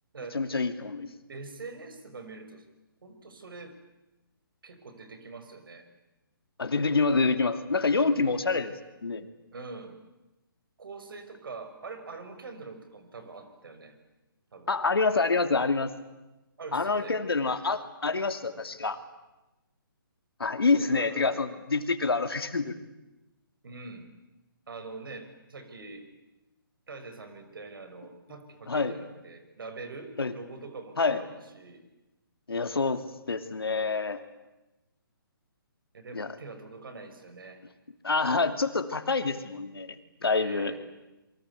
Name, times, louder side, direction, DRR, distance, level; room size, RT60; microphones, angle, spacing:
voice 1, 0.3-1.1 6.6-8.7 9.0-9.3 14.7-15.9 16.7-19.0 20.4-22.8 28.7-28.9 30.2-30.3 31.0-31.2 32.5-34.2 36.1-36.3 38.0-40.0 40.2-40.7, left 4 dB, 85° left, 8 dB, 2.7 m, -27 dB
voice 2, 1.3-2.6 3.0-3.7 4.6-5.9 9.5-10.0 10.8-14.0 14.5-14.7 16.6-17.2 20.8-21.4 23.6-24.1 24.7-26.0 26.9-31.8 35.9-37.6 40.3-40.8, right 3 dB, 70° right, 9 dB, 5.8 m, -44 dB
27.5 x 23.5 x 8.4 m, 1.0 s
hypercardioid pair, 145°, 12 cm